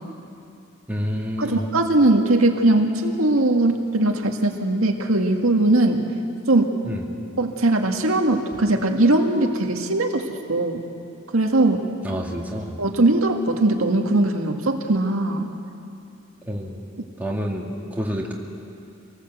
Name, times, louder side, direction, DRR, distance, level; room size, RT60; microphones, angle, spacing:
voice 1, 0.9-1.6 6.8-7.0 12.0-12.7 16.4-16.8 17.2-18.3, equal, 10° right, -2 dB, 2.5 m, -28 dB
voice 2, 1.4-6.1 6.5-6.8 7.4-10.8 11.3-11.9 12.8-15.5, right 2 dB, 90° right, 3 dB, 1.9 m, -20 dB
26.0 x 18.5 x 8.0 m, 2.6 s
head